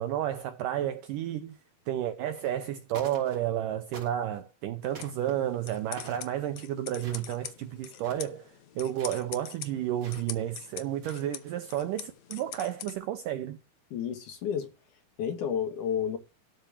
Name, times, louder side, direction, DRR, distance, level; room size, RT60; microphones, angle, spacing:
voice 1, 0.0-1.6 1.9-13.6, right 11 dB, 80° right, 1.9 m, -32 dB
sound 1, 2.3-2.7 2.9-3.6 3.9-4.4 4.9-5.3 6.0-6.3 6.9-7.6 7.9-8.3 8.9-9.2 10.0-10.4 10.9-11.5, right 3 dB, 40° right, 3.8 m, -47 dB
sound 2, 4.8-12.9, left 11 dB, 85° left, 1.5 m, -45 dB
voice 2, 13.9-14.7 15.2-16.2, left 8 dB, 65° left, 2.5 m, -31 dB
12.5 x 4.3 x 7.0 m
omnidirectional pair, 4.5 m